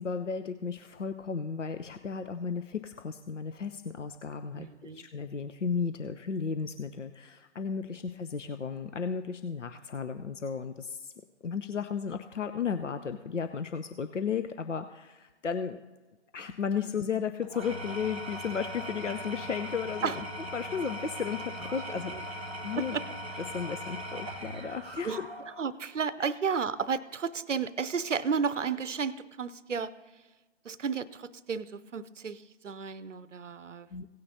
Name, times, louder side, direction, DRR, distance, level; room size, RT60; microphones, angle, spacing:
voice 1, 0.0-4.7 4.9-11.1 11.4-15.8 16.3-20.2 20.5-23.2 23.5-25.3 26.2-26.3 33.9-34.1, left 6 dB, 85° left, 9 dB, 0.7 m, -34 dB
voice 2, 4.6-5.1 20.0-20.1 21.7-21.8 22.1-22.2 22.8-23.0 25.0-25.2 25.6-29.9 30.7-33.9, right 6 dB, 85° right, 16 dB, 0.6 m, -33 dB
Engine / Tools, 17.4-25.7, equal, 10° right, 0.4 m, -39 dB
17.5 x 9.4 x 2.8 m, 1.3 s
figure-of-eight pair, 140°, 36 cm